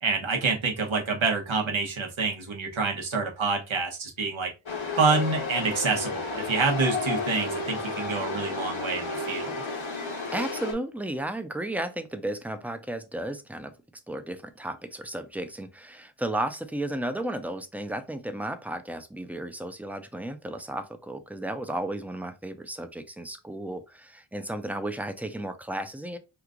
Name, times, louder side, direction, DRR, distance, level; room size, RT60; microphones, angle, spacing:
voice 1, 0.0-4.5 5.0-9.5, right 4 dB, 70° right, 1.0 m, -27 dB
Chatter / Subway metro underground, 4.7-10.7, left 3 dB, 70° left, 1.0 m, -32 dB
voice 2, 10.3-13.7 14.1-26.2, right 1 dB, 5° right, 0.5 m, -34 dB
3.0 x 2.4 x 3.6 m
wide cardioid pair, 40°, 49 cm